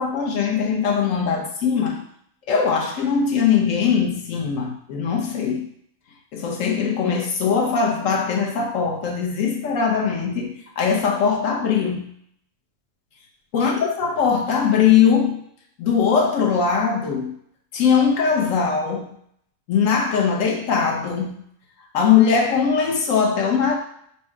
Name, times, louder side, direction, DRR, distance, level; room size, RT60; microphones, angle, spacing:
voice 1, 0.0-2.0 2.5-5.7 6.3-12.1 13.5-15.4 15.8-17.3 17.7-19.1 19.7-21.4 21.9-23.8, left 6 dB, 80° left, 1 dB, 1.2 m, -20 dB
4.5 x 2.2 x 4.5 m, 0.67 s
omnidirectional pair, 1.3 m